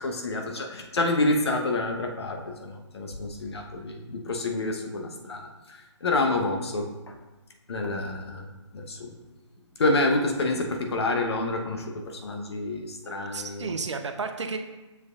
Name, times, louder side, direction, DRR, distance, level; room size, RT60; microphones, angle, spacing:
voice 1, 0.0-7.1 7.7-8.5 8.7-9.1 9.8-13.8, left 2 dB, 60° left, 3 dB, 1.0 m, -28 dB
voice 2, 13.0-14.6, right 4 dB, 70° right, 7 dB, 0.6 m, -33 dB
7.1 x 6.3 x 2.4 m, 1.1 s
figure-of-eight pair, 145°, 16 cm